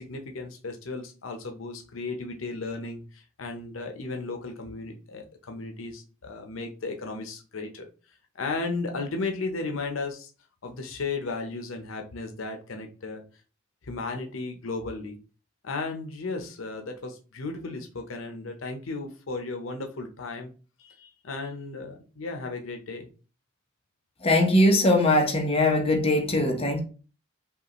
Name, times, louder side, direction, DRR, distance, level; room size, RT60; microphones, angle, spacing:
voice 1, 0.0-7.9 8.3-10.3 10.6-13.2 13.9-15.2 15.6-20.5 20.8-23.1, left 3 dB, 85° left, 0.7 m, -35 dB
voice 2, 24.2-26.8, left 1 dB, 30° left, 0.9 m, -21 dB
5.5 x 2.4 x 3.0 m
head